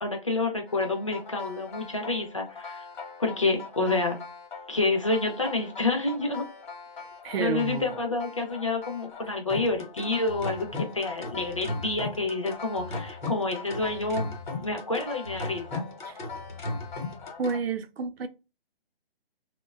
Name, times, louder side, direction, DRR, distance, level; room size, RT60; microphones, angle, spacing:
voice 1, 0.0-2.8 3.2-4.2 4.7-6.4 7.4-14.3 14.6-15.8, left 3 dB, 35° left, 0.4 m, -28 dB
sound 1, 0.7-17.6, left 3 dB, 50° left, 0.8 m, -38 dB
voice 2, 7.2-8.0 16.1-16.2 17.4-18.3, right 6 dB, 75° right, 0.5 m, -30 dB
2.6 x 2.1 x 2.2 m
hypercardioid pair, 165°, 30 cm